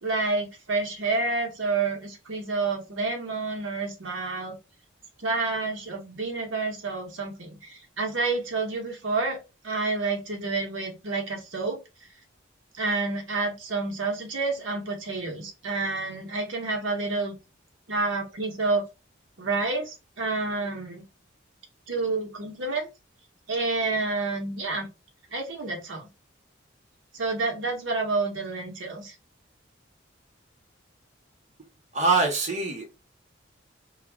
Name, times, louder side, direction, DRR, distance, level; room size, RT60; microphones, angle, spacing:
voice 1, 0.0-4.6 5.2-9.4 9.6-11.8 12.7-17.3 17.9-18.8 19.4-21.0 21.9-22.9 23.5-24.9 25.3-26.1 27.1-29.1, right 3 dB, 85° right, 1.0 m, -29 dB
voice 2, 31.9-33.0, right 3 dB, 35° right, 0.6 m, -24 dB
2.3 x 2.1 x 3.3 m
head